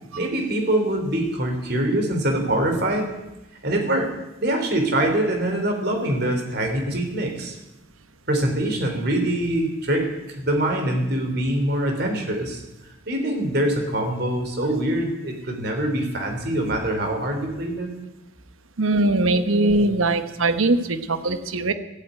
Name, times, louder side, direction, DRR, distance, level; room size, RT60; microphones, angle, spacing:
voice 1, 0.1-3.1 3.6-4.1 4.4-7.6 8.3-12.6 13.1-17.9, right 1 dB, 50° right, 3 dB, 3.4 m, -24 dB
voice 2, 18.8-21.7, right 2 dB, 75° right, 10 dB, 1.1 m, -21 dB
14.5 x 9.1 x 9.1 m, 0.95 s
head